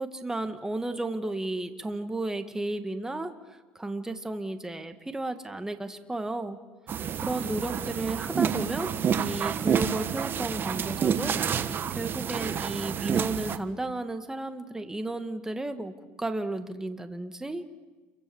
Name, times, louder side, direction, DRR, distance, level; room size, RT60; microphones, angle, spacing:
voice 1, 0.0-6.6 7.2-11.4 11.9-17.6, right 2 dB, 10° right, 7 dB, 1.9 m, -33 dB
sound 1, 6.9-13.6, right 7 dB, 40° right, 1.3 m, -29 dB
28.5 x 24.0 x 7.2 m, 1.2 s
supercardioid pair, 105°, 6 cm